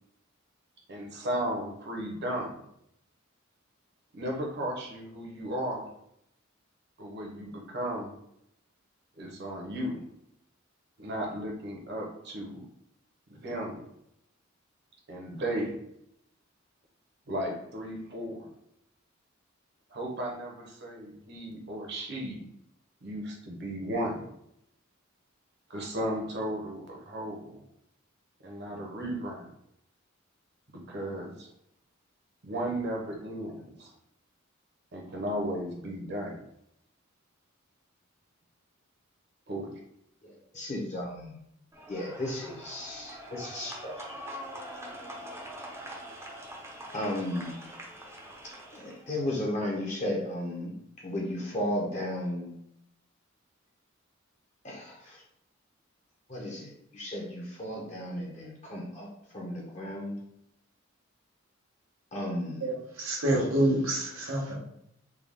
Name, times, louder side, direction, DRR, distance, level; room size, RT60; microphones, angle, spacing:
voice 1, 0.9-2.6 4.1-5.9 7.0-8.1 9.2-10.0 11.0-12.6 13.3-13.8 15.1-15.8 17.3-18.5 19.9-22.4 23.0-24.3 25.7-27.6 28.4-29.5 30.7-31.5 32.4-33.9 34.9-36.4 39.5-39.7, right 1 dB, 55° right, 0.8 m, -35 dB
voice 2, 40.2-41.4 41.9-44.1 46.9-47.6 48.7-50.8 51.0-52.5 54.6-55.2 56.3-59.1 59.3-60.1 62.1-62.7, left 1 dB, 35° left, 0.7 m, -34 dB
sound 1, 41.7-49.1, equal, 15° right, 0.5 m, -44 dB
voice 3, 62.6-64.5, right 1 dB, 90° right, 1.1 m, -27 dB
3.5 x 2.2 x 3.5 m
head